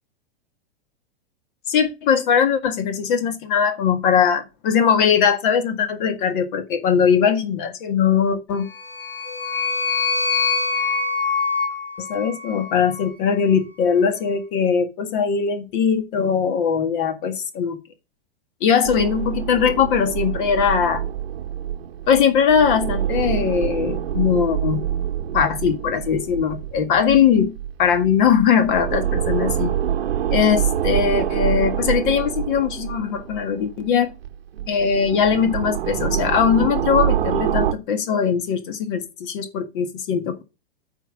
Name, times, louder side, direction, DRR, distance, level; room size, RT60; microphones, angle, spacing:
voice 1, 1.7-8.7 12.0-17.8 18.6-21.0 22.1-24.8 25.3-27.5 27.8-29.7 30.3-34.1 34.7-40.4, left 7 dB, 55° left, 1.7 m, -20 dB
sound 1, 8.7-13.1, left 4 dB, 90° left, 2.1 m, -24 dB
sound 2, 18.8-33.9 34.2-37.7, right 10 dB, 80° right, 1.1 m, -26 dB
9.0 x 3.9 x 7.1 m
hypercardioid pair, 115°, 30 cm